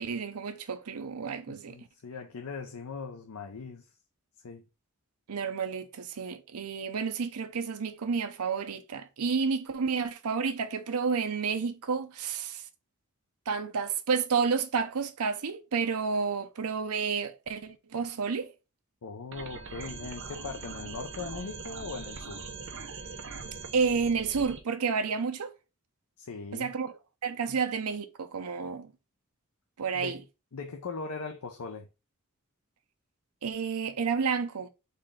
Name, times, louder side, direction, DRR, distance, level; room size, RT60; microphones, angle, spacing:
voice 1, 0.0-1.8 5.3-12.6 13.5-18.5 23.7-25.5 26.5-28.9 29.8-30.2 33.4-34.7, right 5 dB, 85° right, 0.6 m, -30 dB
voice 2, 1.5-3.9 4.4-4.6 19.0-22.5 26.2-26.7 27.5-27.6 29.9-30.2 30.5-31.9, left 4 dB, 85° left, 0.6 m, -40 dB
sound 1, 19.3-24.6, right 4 dB, 60° right, 0.9 m, -41 dB
4.2 x 3.3 x 3.6 m
head